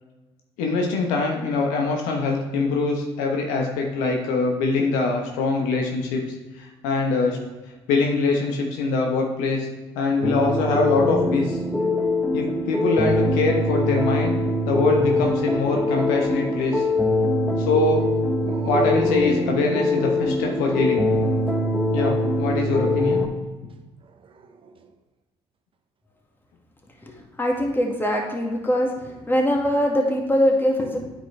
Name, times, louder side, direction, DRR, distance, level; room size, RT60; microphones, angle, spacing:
voice 1, 0.6-6.2 6.6-7.4 7.9-9.7 9.9-11.6 12.3-14.3 14.6-16.9 17.4-18.1 18.6-21.0 21.9-23.2, left 3 dB, 75° left, 1 dB, 1.1 m, -23 dB
sound 1, 10.2-23.3, left 1 dB, ahead, 1.2 m, -23 dB
Dog, 18.4-20.3 21.0-21.8 24.0-24.9, right 4 dB, 40° right, 0.7 m, -37 dB
voice 2, 27.0-31.0, equal, 15° left, 0 dB, 2.0 m, -22 dB
8.9 x 5.2 x 3.3 m, 1.2 s
hypercardioid pair, 55°, 13 cm